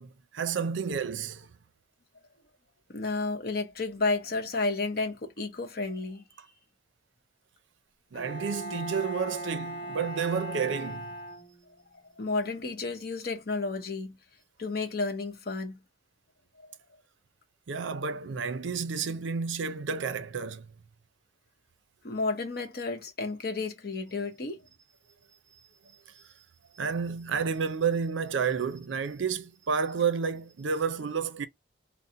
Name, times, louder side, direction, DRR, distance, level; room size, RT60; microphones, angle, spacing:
voice 1, 0.0-1.5 8.1-11.1 17.7-20.6 26.2-26.3 26.7-31.5, right 6 dB, 75° right, 0.5 m, -30 dB
voice 2, 2.9-6.2 11.9-14.2 14.6-15.8 22.0-24.6, left 3 dB, 50° left, 0.8 m, -32 dB
Bowed string instrument, 8.1-11.9, right 1 dB, 25° left, 1.1 m, -38 dB
4.2 x 2.0 x 3.6 m
head